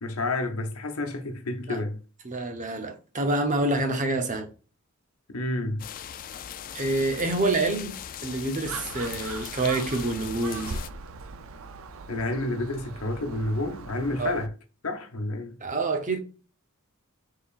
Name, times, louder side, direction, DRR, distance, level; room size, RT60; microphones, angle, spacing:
voice 1, 0.0-2.0 5.3-5.9 12.1-14.5 14.8-15.6, left 2 dB, 75° left, 0.9 m, -30 dB
voice 2, 2.2-4.5 6.7-7.9 8.2-10.7 14.2-14.4 15.6-16.2, right 2 dB, 35° right, 0.8 m, -27 dB
sound 1, 5.8-10.9, left 9 dB, 40° left, 0.3 m, -39 dB
Gull seagull, 8.7-14.5, right 4 dB, 60° right, 0.4 m, -40 dB
5.2 x 3.7 x 2.4 m
head